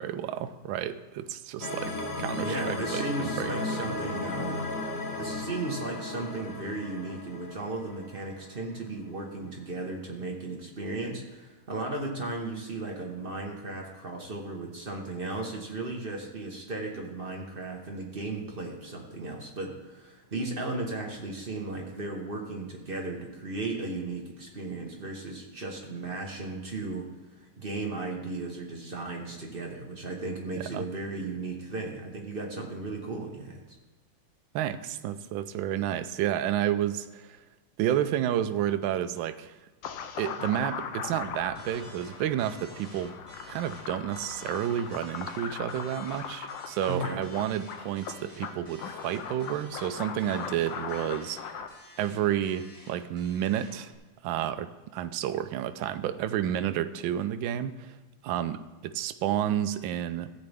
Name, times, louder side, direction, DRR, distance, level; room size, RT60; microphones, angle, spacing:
voice 1, 0.0-4.0 30.7-30.8 34.5-37.4 37.8-39.5 40.2-43.1 43.5-51.6 52.0-53.9 54.2-57.9 58.2-58.6 58.8-60.4, right 11 dB, 75° right, 10 dB, 1.2 m, -30 dB
sound 1, 1.6-8.7, left 2 dB, 45° left, 1.4 m, -35 dB
voice 2, 2.4-4.7 5.1-27.1 27.6-33.6 46.9-47.2, right 2 dB, 35° right, 0 dB, 1.0 m, -35 dB
sound 2, 39.8-51.7, left 7 dB, 70° left, 1.3 m, -39 dB
sound 3, 41.5-53.9, equal, 15° left, 2.7 m, -52 dB
14.5 x 8.6 x 3.5 m, 1.2 s
omnidirectional pair, 2.4 m